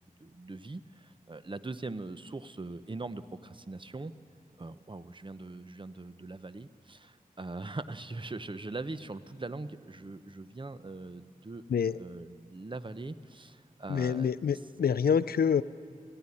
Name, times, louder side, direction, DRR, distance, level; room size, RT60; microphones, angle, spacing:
voice 1, 0.2-4.1 4.6-11.6 11.9-14.3, right 3 dB, 35° right, 12 dB, 0.8 m, -41 dB
voice 2, 13.9-15.6, left 7 dB, 90° left, 16 dB, 0.4 m, -27 dB
18.5 x 15.5 x 9.8 m, 2.2 s
wide cardioid pair, 65°, 15 cm